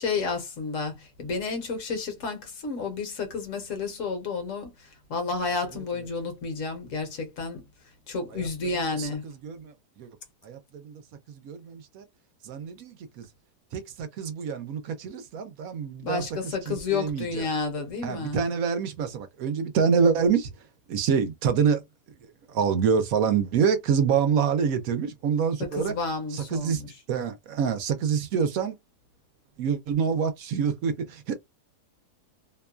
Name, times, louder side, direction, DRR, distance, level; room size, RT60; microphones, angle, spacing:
voice 1, 0.0-7.6 8.1-9.2 16.0-18.4 25.6-26.9, left 4 dB, 55° left, 1.1 m, -31 dB
voice 2, 5.7-6.1 8.3-8.5 8.9-10.1 10.4-11.0 11.3-12.0 12.4-13.3 13.7-17.5 18.0-20.5 20.9-21.8 22.2-25.9 26.3-26.8 27.1-28.8 29.6-31.3, right 6 dB, 70° right, 0.9 m, -26 dB
2.9 x 2.2 x 2.3 m
omnidirectional pair, 1.7 m